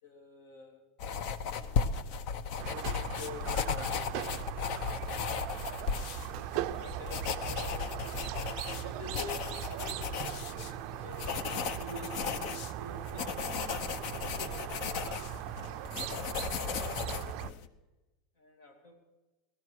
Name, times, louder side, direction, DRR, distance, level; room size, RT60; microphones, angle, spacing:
voice 1, 0.0-0.9 1.5-1.8 2.7-4.6 6.3-8.2 8.8-11.3 11.8-16.3 16.6-17.7 18.4-18.9, left 2 dB, 75° left, 4 dB, 2.9 m, -49 dB
sound 1, 1.0-17.7, left 6 dB, 60° left, 0.9 m, -36 dB
Squeak, 2.6-17.5, right 16 dB, 55° right, 0.4 m, -39 dB
18.0 x 13.0 x 4.8 m, 1.1 s
hypercardioid pair, 110°, 0 cm